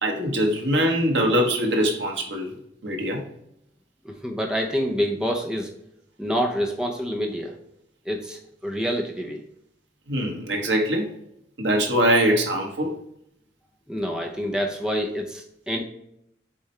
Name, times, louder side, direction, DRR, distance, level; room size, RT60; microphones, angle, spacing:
voice 1, 0.0-2.5 2.8-3.2 10.1-11.1 11.6-12.9, equal, 90° right, 2 dB, 1.3 m, -22 dB
voice 2, 4.0-5.7 6.2-7.5 8.1-9.4 13.9-15.8, equal, 5° right, 1 dB, 0.7 m, -27 dB
7.4 x 4.3 x 3.3 m, 0.76 s
head